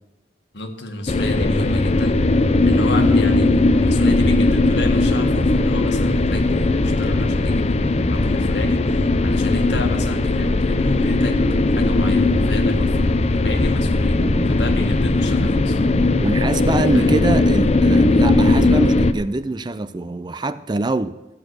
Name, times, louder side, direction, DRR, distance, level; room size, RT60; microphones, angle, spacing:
voice 1, 0.5-2.3 2.6-8.9 9.2-14.2 14.5-15.8 16.9-17.1, left 2 dB, 75° left, 1.7 m, -31 dB
sound 1, 1.1-19.1, left 2 dB, 35° left, 0.5 m, -18 dB
voice 2, 14.2-14.6 16.2-21.2, right 2 dB, 25° right, 0.4 m, -24 dB
14.5 x 8.5 x 6.5 m
head